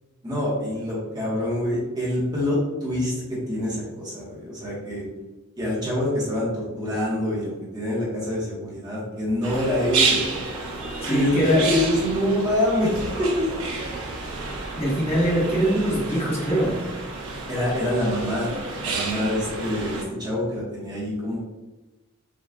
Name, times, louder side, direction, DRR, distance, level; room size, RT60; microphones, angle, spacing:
voice 1, 0.2-5.0 5.6-10.3 11.0-13.5 17.5-18.5 18.8-21.4, left 1 dB, 20° right, -7 dB, 1.4 m, -26 dB
sound 1, 9.4-20.0, right 4 dB, 90° right, 0.9 m, -30 dB
voice 2, 11.0-11.7 14.8-16.8, equal, 25° left, -5 dB, 1.2 m, -22 dB
6.1 x 3.1 x 2.4 m, 1.1 s
head